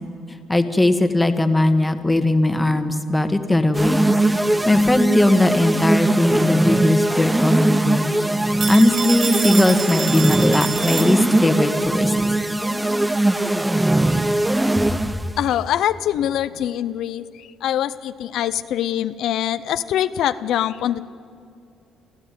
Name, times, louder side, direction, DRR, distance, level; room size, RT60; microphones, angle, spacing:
voice 1, 0.5-4.1 4.4-8.1 8.7-12.1 14.8-15.0, left 1 dB, 10° left, 8 dB, 1.6 m, -19 dB
sound 1, 3.7-15.3, right 1 dB, 10° right, 0.7 m, -20 dB
Telephone, 8.6-11.6, right 5 dB, 40° right, 1.2 m, -28 dB
voice 2, 15.4-21.0, left 11 dB, 75° left, 12 dB, 0.6 m, -23 dB
25.5 x 15.0 x 9.4 m, 2.5 s
cardioid pair, 115°, 0 cm